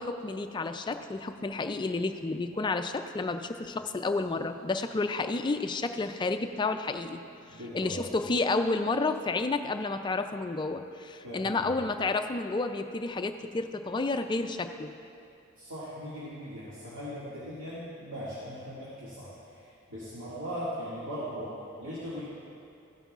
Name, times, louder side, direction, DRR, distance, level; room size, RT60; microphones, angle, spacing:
voice 1, 0.0-7.2 7.7-14.9, left 3 dB, 20° left, 7 dB, 0.3 m, -30 dB
voice 2, 7.5-8.0 11.2-11.6 15.6-21.5 21.8-22.2, equal, 80° right, -10 dB, 2.2 m, -39 dB
15.0 x 9.3 x 2.4 m, 2.6 s
head